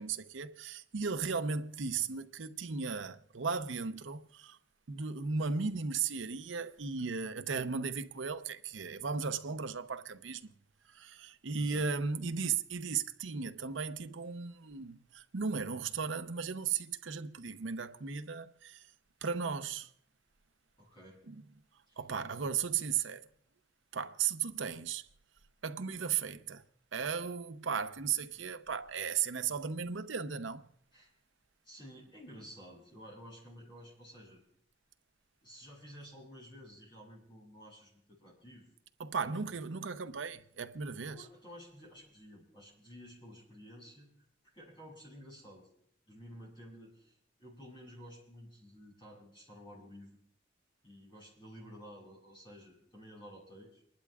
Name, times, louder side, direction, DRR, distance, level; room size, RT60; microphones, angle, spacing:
voice 1, 0.0-4.6 4.9-10.5 10.9-18.9 19.2-19.9 21.3-21.4 22.0-23.3 23.9-25.1 25.6-26.6 26.9-30.6 39.0-41.2, right 5 dB, 85° right, 0.7 m, -36 dB
voice 2, 20.8-21.2 21.9-22.0 28.3-28.4 30.9-31.1 31.6-34.4 35.4-38.7 39.2-39.4 40.9-44.1 44.5-45.7 46.1-50.2 50.8-53.8, equal, 25° left, 7.3 m, -52 dB
30.0 x 11.5 x 2.4 m
head